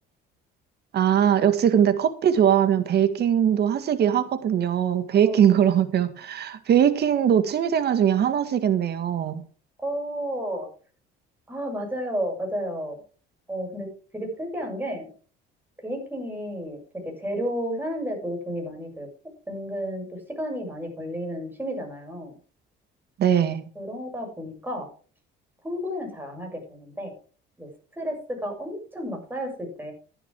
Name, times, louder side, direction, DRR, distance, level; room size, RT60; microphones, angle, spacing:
voice 1, 0.9-9.4 23.2-23.7, right 9 dB, 55° right, 12 dB, 1.8 m, -21 dB
voice 2, 9.8-10.7 11.5-13.0 13.5-13.9 14.1-15.1 15.8-19.1 19.5-22.3 23.7-24.9 25.6-27.1 27.6-27.7 28.0-29.9, equal, 10° right, 2 dB, 7.0 m, -32 dB
15.5 x 10.0 x 3.6 m, 0.39 s
cardioid pair, 105°, 20 cm